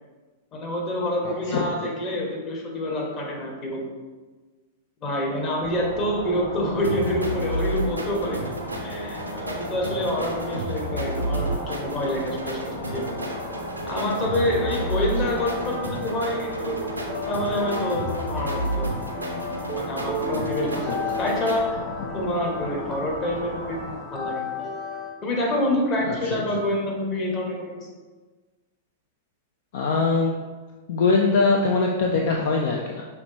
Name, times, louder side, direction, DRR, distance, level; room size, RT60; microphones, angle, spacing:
voice 1, 0.5-3.8 5.0-8.5 8.8-13.0 13.9-16.8 17.3-19.0 19.8-21.8 22.1-24.5 25.2-27.9, left 1 dB, 30° left, -1 dB, 1.2 m, -27 dB
voice 2, 1.2-1.7 15.2-15.4 20.6-21.0 26.1-26.4 29.7-30.3 30.9-33.0, left 4 dB, 55° left, 0 dB, 0.5 m, -23 dB
sound 1, 5.6-24.0, left 1 dB, 75° left, 1.2 m, -37 dB
sound 2, 6.8-21.6, right 1 dB, 85° right, 0.6 m, -31 dB
sound 3, 12.8-25.2, left 4 dB, 15° left, 0.8 m, -35 dB
5.8 x 3.2 x 2.7 m, 1.3 s
figure-of-eight pair, 100°, 0 cm